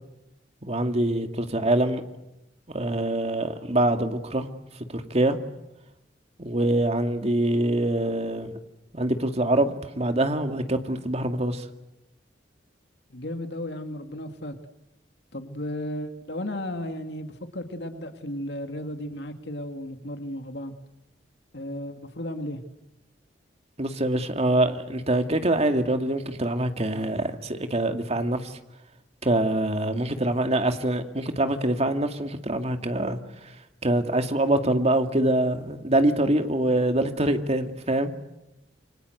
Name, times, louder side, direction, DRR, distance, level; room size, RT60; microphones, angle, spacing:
voice 1, 0.6-2.0 2.7-4.5 4.9-5.4 6.4-8.6 8.9-11.7 23.8-28.6 29.2-33.2 33.8-38.1, right 1 dB, 35° right, 2.3 m, -24 dB
voice 2, 13.1-14.5 15.3-20.7 21.5-22.6, left 1 dB, 70° left, 2.4 m, -34 dB
28.0 x 25.0 x 8.0 m
head